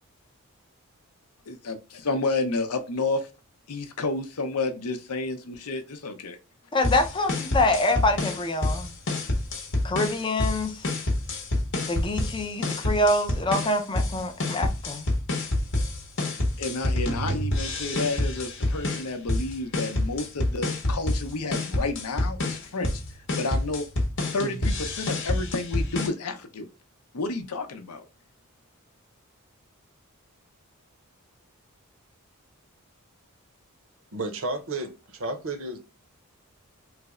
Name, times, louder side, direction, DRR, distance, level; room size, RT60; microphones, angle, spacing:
voice 1, 1.5-3.2 3.7-6.4 16.6-23.0 23.4-23.8 24.3-26.7 27.1-28.0, left 3 dB, 85° left, 0.6 m, -30 dB
voice 2, 6.7-8.9 9.8-10.9 11.9-15.0, left 1 dB, 20° left, 0.5 m, -25 dB
sound 1, 6.8-26.1, left 1 dB, 55° left, 0.8 m, -28 dB
voice 3, 34.1-34.9 35.2-35.8, right 2 dB, 60° right, 0.7 m, -31 dB
3.2 x 2.0 x 3.6 m
head